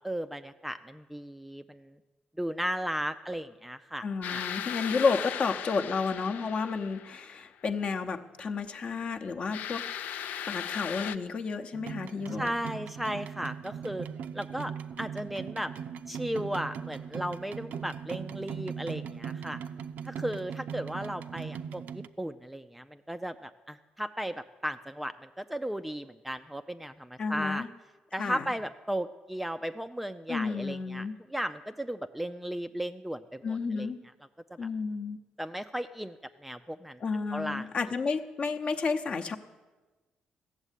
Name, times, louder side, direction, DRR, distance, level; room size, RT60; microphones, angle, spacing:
voice 1, 0.0-2.0 2.4-4.4 12.4-14.1 14.3-14.7 15.0-15.7 16.1-19.6 20.0-27.7 28.1-33.9 34.5-34.6 35.4-37.0 37.3-37.7, equal, 5° right, 8 dB, 0.3 m, -35 dB
voice 2, 4.0-9.9 10.2-12.5 27.2-27.7 28.2-28.5 30.3-31.2 33.4-34.0 34.6-35.2 37.0-39.4, left 4 dB, 40° left, 6 dB, 0.8 m, -31 dB
sound 1, 4.2-7.5 9.5-11.2, left 9 dB, 80° left, 0.5 m, -37 dB
sound 2, 11.7-22.1, right 7 dB, 75° right, 0.5 m, -39 dB
15.5 x 7.4 x 9.8 m, 1.2 s
cardioid pair, 145°, 3 cm